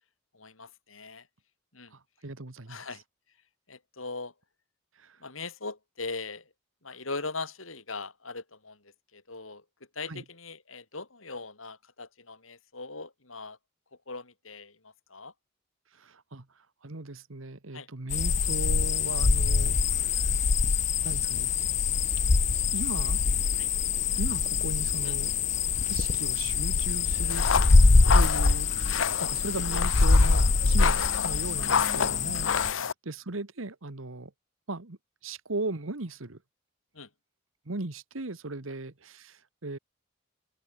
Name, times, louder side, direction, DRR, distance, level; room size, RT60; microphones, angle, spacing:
voice 1, 0.3-1.3 1.7-1.9 2.7-3.0 3.7-4.3 5.2-6.5 6.8-8.8 9.1-9.6 9.9-13.6 14.1-15.3 17.7-17.9 23.6-23.7 25.0-25.1 27.1-27.6 28.0-28.2 36.9-37.1, left 3 dB, 90° left, 6.2 m, -40 dB
voice 2, 1.9-2.9 5.0-5.2 10.1-10.2 15.9-16.5 16.8-20.3 21.0-21.5 22.7-23.2 24.2-25.3 25.9-27.4 28.1-34.3 34.7-36.4 37.6-39.8, right 2 dB, 85° right, 1.6 m, -37 dB
sound 1, 18.1-32.7, left 4 dB, 35° left, 0.7 m, -24 dB
sound 2, 27.3-32.9, left 6 dB, 70° left, 0.7 m, -30 dB
open air
head